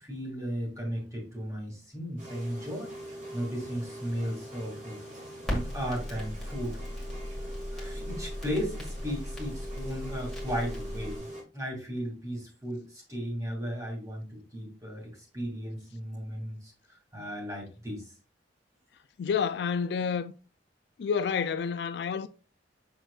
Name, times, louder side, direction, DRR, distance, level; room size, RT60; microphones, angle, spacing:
voice 1, 0.0-2.9 3.3-5.0 5.5-6.8 7.7-18.1, equal, 20° right, 2.5 m, -36 dB
sound 1, 2.2-11.4, right 1 dB, 45° right, 2.4 m, -43 dB
Crackle, 5.4-11.2, left 1 dB, ahead, 1.9 m, -37 dB
voice 2, 19.2-20.3 21.0-22.3, left 6 dB, 60° left, 0.3 m, -29 dB
6.6 x 6.1 x 2.4 m
head